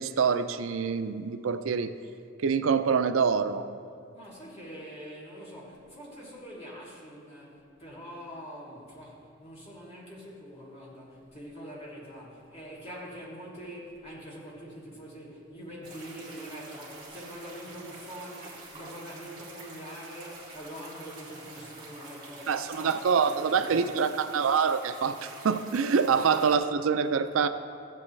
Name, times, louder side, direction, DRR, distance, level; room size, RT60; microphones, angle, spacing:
voice 1, 0.0-1.9 2.4-3.7 22.5-27.5, right 6 dB, 90° right, 11 dB, 0.4 m, -25 dB
voice 2, 4.1-24.2 26.1-26.3, equal, 30° left, -6 dB, 2.6 m, -44 dB
sound 1, 15.8-26.6, right 2 dB, 25° right, 2.0 m, -47 dB
14.5 x 8.4 x 3.2 m, 2.5 s
head